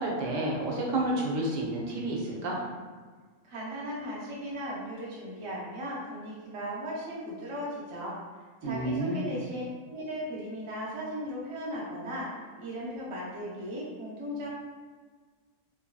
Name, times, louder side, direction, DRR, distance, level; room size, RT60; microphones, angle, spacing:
voice 1, 0.0-2.6 8.6-9.3, right 1 dB, 75° right, -2 dB, 1.0 m, -30 dB
voice 2, 3.5-8.2 8.6-12.3 12.6-14.5, equal, 40° right, -6 dB, 0.4 m, -37 dB
2.9 x 2.6 x 2.2 m, 1.5 s
omnidirectional pair, 1.4 m